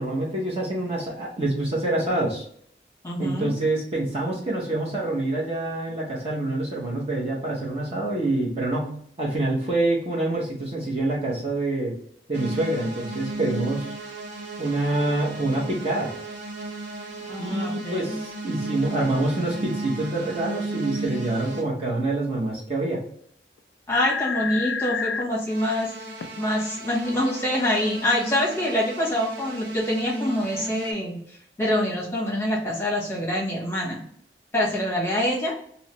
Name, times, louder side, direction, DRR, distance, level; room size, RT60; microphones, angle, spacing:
voice 1, 0.0-2.4 3.2-11.9 12.3-13.9 14.6-16.1 17.4-23.0, right 2 dB, 35° right, -4 dB, 0.8 m, -26 dB
voice 2, 3.0-3.5 17.3-18.2 23.9-25.9 26.4-31.2 31.6-34.0 34.5-35.5, left 1 dB, 15° left, -4 dB, 1.0 m, -25 dB
sound 1, 12.3-21.7 25.5-30.9, right 2 dB, 80° right, 0.7 m, -35 dB
sound 2, 23.6-23.7 23.9-25.2 26.2-26.3, left 6 dB, 90° left, 0.4 m, -28 dB
3.1 x 2.8 x 2.9 m, 0.65 s
head